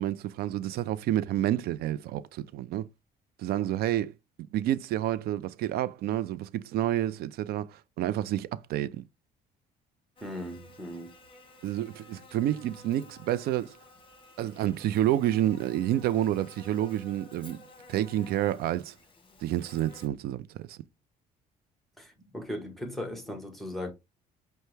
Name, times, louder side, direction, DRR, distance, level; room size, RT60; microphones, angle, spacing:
voice 1, 0.0-2.9 3.4-4.1 4.5-9.0 11.6-13.8 14.4-17.6 17.9-18.9 19.4-20.8, right 12 dB, 70° right, 0.4 m, -29 dB
Buzz, 10.2-20.1, left 2 dB, 30° left, 1.0 m, -53 dB
voice 2, 10.2-11.1 22.0-23.9, left 1 dB, ahead, 1.2 m, -38 dB
5.5 x 2.1 x 3.2 m
cardioid pair, 110°, 17 cm